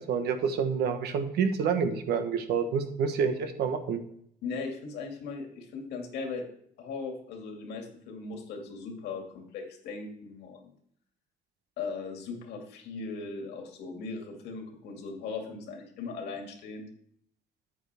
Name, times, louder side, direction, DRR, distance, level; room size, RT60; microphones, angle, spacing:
voice 1, 0.0-4.0, right 6 dB, 75° right, 7 dB, 1.2 m, -28 dB
voice 2, 4.4-6.5 6.8-10.7 11.8-16.9, left 4 dB, 80° left, 2 dB, 2.3 m, -38 dB
9.3 x 8.8 x 3.5 m, 0.67 s
cardioid pair, 110°, 17 cm